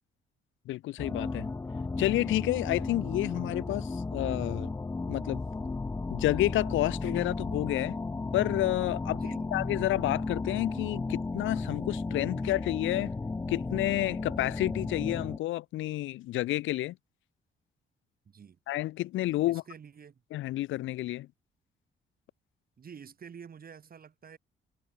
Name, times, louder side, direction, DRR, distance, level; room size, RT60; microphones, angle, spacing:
voice 1, 0.7-1.5 2.0-4.7 5.1-5.4 6.1-8.0 8.3-9.2 9.5-13.1 13.5-16.9 18.7-19.6 20.3-21.3, left 16 dB, 75° left, 0.5 m, -30 dB
sound 1, 1.0-15.4, left 3 dB, 15° left, 0.5 m, -34 dB
voice 2, 9.1-9.5 18.3-18.6 19.4-20.2 22.8-24.4, right 7 dB, 50° right, 6.0 m, -48 dB
cardioid pair, 90°, 20 cm